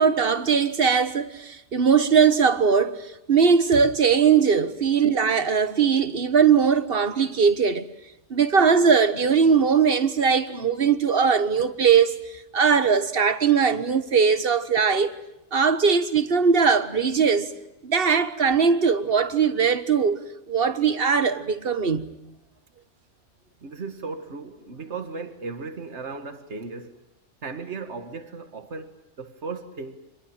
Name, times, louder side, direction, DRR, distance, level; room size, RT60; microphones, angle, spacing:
voice 1, 0.0-7.9 8.3-15.1 15.5-17.5 17.8-22.1, right 6 dB, 55° right, 1.6 m, -20 dB
voice 2, 23.6-27.0 27.4-30.1, right 4 dB, 70° right, 2.1 m, -36 dB
26.5 x 22.0 x 8.9 m
omnidirectional pair, 1.2 m